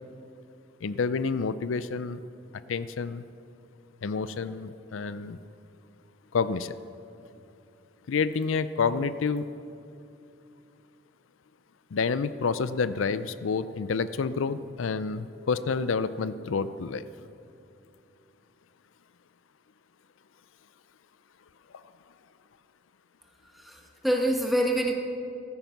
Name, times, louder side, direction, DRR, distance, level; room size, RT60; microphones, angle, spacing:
voice 1, 0.8-2.2 2.7-3.2 4.0-5.4 6.3-6.8 8.1-9.5 11.9-17.0, left 5 dB, 85° left, 14 dB, 0.5 m, -29 dB
voice 2, 23.5-24.9, right 1 dB, ahead, 1 dB, 1.4 m, -26 dB
14.5 x 13.5 x 5.9 m, 2.6 s
head